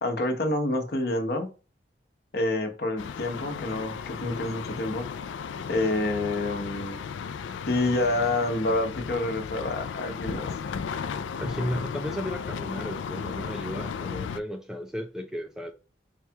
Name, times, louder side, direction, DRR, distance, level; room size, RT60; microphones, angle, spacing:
voice 1, 0.0-1.5 2.3-5.1 5.7-7.0 7.7-10.5, left 2 dB, 60° left, 0.9 m, -28 dB
sound 1, 3.0-14.4, left 6 dB, 90° left, 0.3 m, -35 dB
voice 2, 11.4-15.7, equal, 5° right, 0.3 m, -34 dB
4.6 x 2.3 x 2.8 m
head